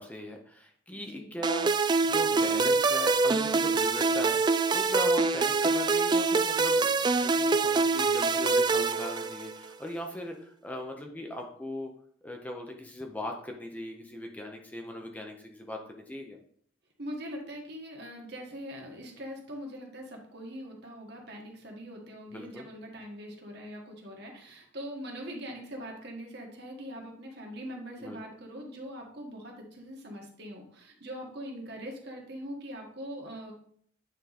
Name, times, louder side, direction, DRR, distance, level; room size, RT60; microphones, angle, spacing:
voice 1, 0.0-11.9 12.2-16.4 22.3-22.7 28.0-28.2, left 1 dB, 10° left, 2 dB, 0.6 m, -39 dB
voice 2, 0.9-1.4 17.0-33.5, equal, 60° right, 0 dB, 1.6 m, -42 dB
sound 1, 1.4-9.7, right 4 dB, 25° right, 0.3 m, -25 dB
9.1 x 3.8 x 4.1 m, 0.62 s
head